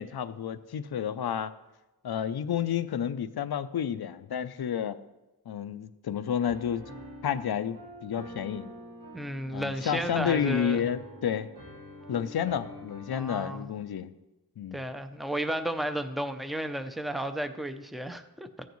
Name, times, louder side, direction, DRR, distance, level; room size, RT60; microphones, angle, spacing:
voice 1, 0.0-1.5 2.0-5.0 5.5-6.9 7.2-8.7 9.5-11.5 12.1-14.1 14.6-14.8, left 8 dB, 85° left, 12 dB, 0.6 m, -30 dB
Piano, 6.5-13.3, equal, 65° right, 2.5 m, -46 dB
voice 2, 9.1-10.8 13.1-13.7 14.7-18.5, right 1 dB, ahead, 8 dB, 0.5 m, -33 dB
14.5 x 9.3 x 3.1 m, 1.0 s
wide cardioid pair, 100°, 37 cm